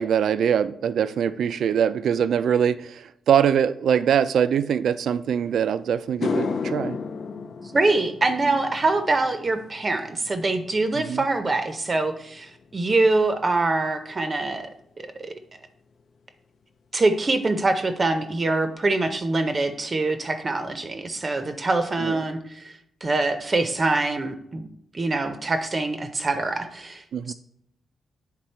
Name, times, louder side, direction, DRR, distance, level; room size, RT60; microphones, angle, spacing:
voice 1, 0.0-7.0 10.9-11.2 22.0-22.2 27.1-27.3, right 8 dB, 75° right, 14 dB, 0.3 m, -23 dB
sound 1, 5.5-5.6 6.0-14.5 14.8-15.2 18.8-18.9 20.6-20.7 21.0-21.1 21.4-21.9, left 5 dB, 55° left, 0.4 m, -35 dB
voice 2, 7.7-14.7 15.2-15.3 16.9-24.7 24.9-27.3, right 2 dB, 30° right, 7 dB, 0.6 m, -24 dB
9.1 x 3.6 x 4.3 m, 0.75 s
cardioid pair, 120°, 0 cm